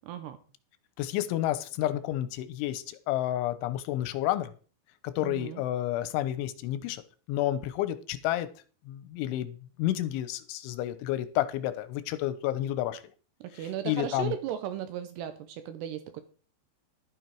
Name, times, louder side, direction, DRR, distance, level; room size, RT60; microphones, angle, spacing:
voice 1, 0.1-0.4 5.2-5.6 13.4-16.2, right 10 dB, 80° right, 10 dB, 2.6 m, -36 dB
voice 2, 1.0-4.5 5.0-7.0 7.3-8.5 8.9-13.0 13.9-14.3, left 13 dB, 85° left, 13 dB, 3.2 m, -30 dB
12.0 x 9.2 x 4.6 m, 0.39 s
omnidirectional pair, 5.5 m